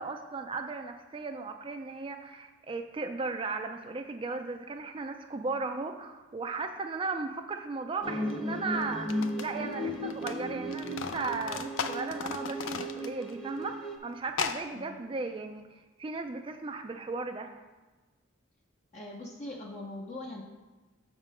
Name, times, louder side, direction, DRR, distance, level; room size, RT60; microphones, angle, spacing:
voice 1, 0.0-17.5, right 3 dB, 25° right, 5 dB, 0.4 m, -36 dB
sound 1, 8.0-14.0, equal, 5° left, 0.7 m, -36 dB
sound 2, 8.3-8.4 8.9-10.4 10.6-13.4 13.6-13.7 14.3-14.6, left 6 dB, 75° left, 0.4 m, -36 dB
voice 2, 18.9-20.4, left 1 dB, 35° left, -2 dB, 0.6 m, -41 dB
6.5 x 3.6 x 6.1 m, 1.2 s
head